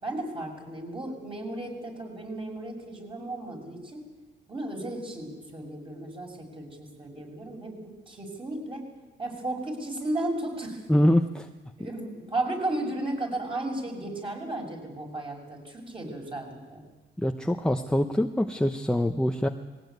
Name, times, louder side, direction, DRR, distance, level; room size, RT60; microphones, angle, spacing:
voice 1, 0.0-4.0 4.5-8.8 9.2-10.8 11.8-16.8, right 2 dB, 25° right, 1 dB, 6.7 m, -34 dB
voice 2, 10.9-11.5 17.2-19.5, left 1 dB, 5° left, 5 dB, 0.9 m, -24 dB
20.0 x 17.0 x 9.4 m, 1.2 s
cardioid pair, 90°, 20 cm